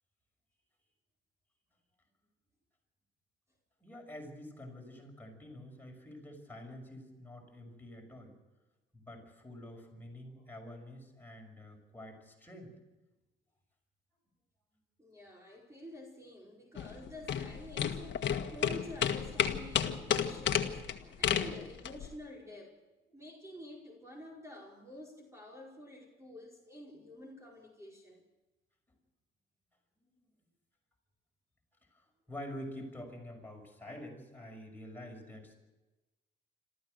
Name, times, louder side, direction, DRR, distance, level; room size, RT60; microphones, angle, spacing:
voice 1, 3.8-8.3 8.9-12.7 31.9-35.5, left 1 dB, 10° left, 1 dB, 6.0 m, -47 dB
voice 2, 10.2-10.6 15.0-22.8 23.1-28.2, left 1 dB, 15° right, -2 dB, 5.0 m, -49 dB
Moteur bateau, 16.8-22.1, left 8 dB, 65° left, 1.7 m, -32 dB
27.5 x 14.0 x 6.7 m, 1.1 s
cardioid pair, 90°, 20 cm